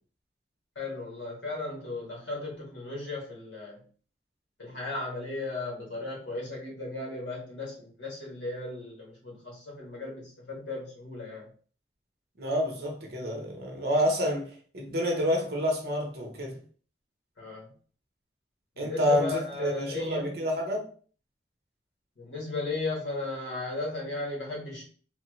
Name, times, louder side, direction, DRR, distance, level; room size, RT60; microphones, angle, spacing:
voice 1, 0.7-3.8 4.6-11.5 17.4-17.7 18.7-20.4 22.2-24.8, left 3 dB, 85° left, 1.3 m, -36 dB
voice 2, 12.4-14.5 14.7-16.6 18.8-20.9, equal, 55° right, 0.8 m, -28 dB
3.2 x 2.1 x 3.0 m
head